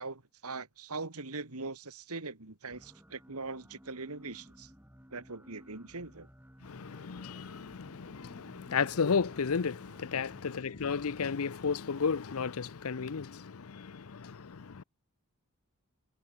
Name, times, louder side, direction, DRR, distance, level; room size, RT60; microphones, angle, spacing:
voice 1, 0.0-4.7 5.1-6.3, right 3 dB, 80° right, 2.5 m, -41 dB
sound 1, 2.7-11.3, equal, 10° right, 7.3 m, -57 dB
voice 2, 6.6-14.8, left 5 dB, 70° left, 0.6 m, -33 dB
head